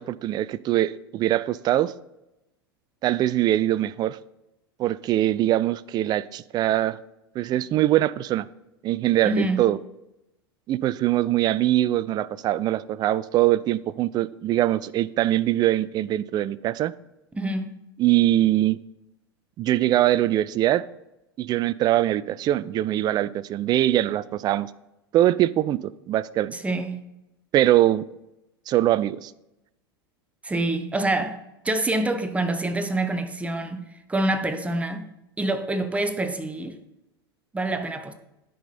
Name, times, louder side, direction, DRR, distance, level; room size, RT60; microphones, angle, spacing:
voice 1, 0.0-1.9 3.0-4.2 4.8-7.0 7.4-8.5 8.8-9.8 10.7-16.9 18.0-18.8 19.6-20.8 21.4-24.7 25.1-26.6 27.5-28.0 28.7-29.3, right 14 dB, 30° right, 0.3 m, -22 dB
voice 2, 9.2-9.7 17.3-17.8 26.5-27.1 30.4-35.1 35.4-36.8 37.5-38.1, right 2 dB, 10° right, 0.8 m, -26 dB
10.0 x 5.0 x 4.3 m
hypercardioid pair, 90°, 13 cm